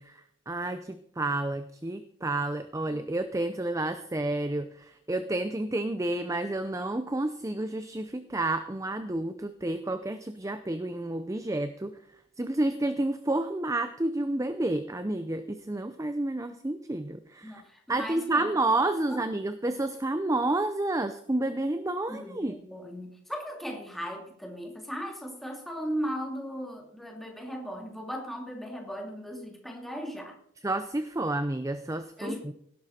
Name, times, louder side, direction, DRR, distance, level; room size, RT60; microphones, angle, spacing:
voice 1, 0.0-11.9 12.4-17.6 17.9-22.6 30.6-32.5, right 2 dB, 15° right, 10 dB, 0.6 m, -30 dB
voice 2, 17.4-18.5 19.1-19.2 22.1-30.4 32.2-32.4, equal, ahead, 1 dB, 2.5 m, -37 dB
17.5 x 11.5 x 4.3 m, 0.69 s
head